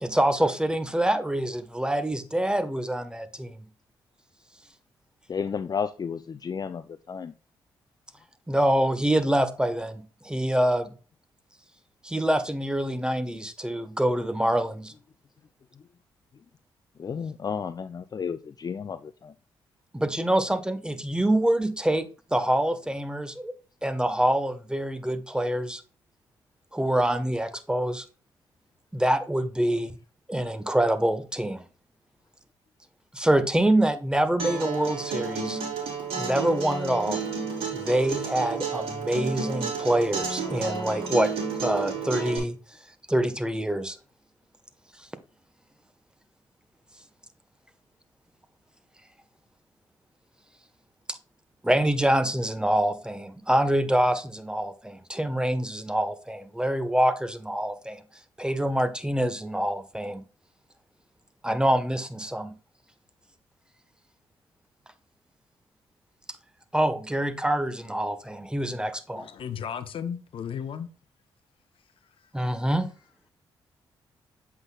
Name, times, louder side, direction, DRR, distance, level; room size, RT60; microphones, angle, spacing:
voice 1, 0.0-3.6 8.5-10.9 12.0-14.9 19.9-23.5 23.8-25.8 26.7-28.0 28.9-30.0 30.3-31.6 33.1-35.6 36.2-37.2 37.7-41.3 41.6-42.6 43.1-44.0 51.1-51.2 51.6-58.0 58.4-60.2 61.4-62.5 66.7-69.3 72.3-72.9, right 1 dB, 10° right, 1.2 m, -25 dB
voice 2, 5.3-7.3 17.0-19.3, left 6 dB, 40° left, 0.5 m, -32 dB
Acoustic guitar, 34.4-42.4, right 5 dB, 75° right, 3.5 m, -31 dB
voice 3, 69.2-70.9, left 8 dB, 65° left, 0.8 m, -34 dB
7.8 x 5.8 x 2.3 m
supercardioid pair, 50°, 10 cm